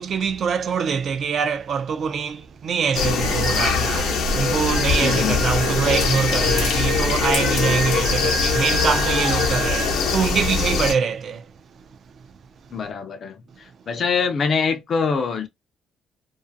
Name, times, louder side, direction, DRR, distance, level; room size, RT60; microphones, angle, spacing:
voice 1, 0.0-11.5, right 6 dB, 40° right, 0.3 m, -24 dB
sound 1, 2.9-10.9, left 5 dB, 80° left, 0.7 m, -22 dB
Singing, 3.2-10.2, right 6 dB, 75° right, 0.7 m, -31 dB
voice 2, 5.0-5.4 12.7-13.3 13.9-15.5, left 5 dB, 35° left, 0.4 m, -23 dB
2.4 x 2.4 x 2.5 m
cardioid pair, 170°, 0 cm